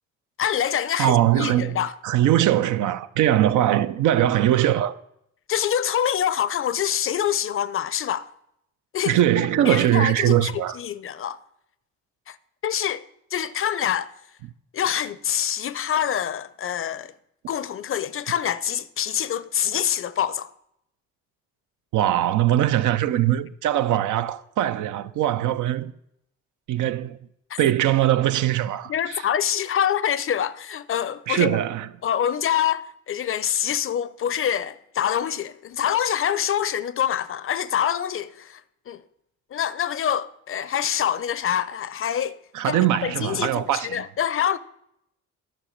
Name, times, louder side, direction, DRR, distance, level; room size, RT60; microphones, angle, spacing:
voice 1, 0.4-1.9 5.5-8.3 8.9-9.2 9.6-11.4 12.3-12.4 12.6-13.0 13.3-14.1 14.7-17.1 17.5-20.5 28.9-31.6 32.0-38.6 38.9-39.0 39.5-42.4 42.6-44.6, left 9 dB, 45° left, 0.5 m, -25 dB
voice 2, 1.0-1.8 2.0-5.0 9.0-10.8 21.9-25.9 26.7-27.2 27.6-29.3 31.3-31.9 42.5-44.0, right 12 dB, 80° right, 0.6 m, -21 dB
10.5 x 5.9 x 6.4 m
cardioid pair, 90°, 30 cm